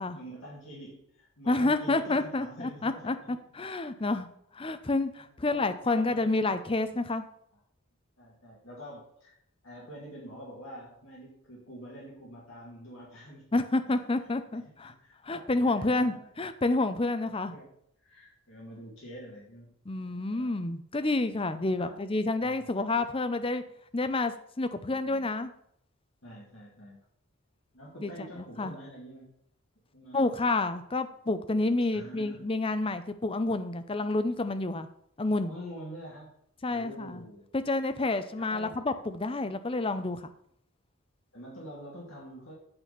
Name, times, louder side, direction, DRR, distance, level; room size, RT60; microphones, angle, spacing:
voice 1, 0.1-3.2 3.8-3.9 5.3-6.6 8.2-9.4 9.6-13.5 13.8-14.0 14.4-16.3 17.3-17.7 18.0-19.7 20.0-20.5 21.8-22.0 22.4-22.7 24.9-25.3 26.2-27.0 27.7-29.3 29.9-30.3 31.9-32.4 35.4-36.3 36.7-37.5 38.4-38.8 41.3-42.5, equal, 60° left, -4 dB, 2.1 m, -46 dB
voice 2, 1.5-4.3 4.5-7.3 13.5-14.9 15.2-17.5 19.9-23.6 23.9-25.5 28.0-28.1 28.4-28.7 30.1-34.9 35.2-35.6 36.6-37.2 37.5-40.2, left 2 dB, 25° left, 10 dB, 0.6 m, -29 dB
8.7 x 4.2 x 6.8 m, 0.69 s
head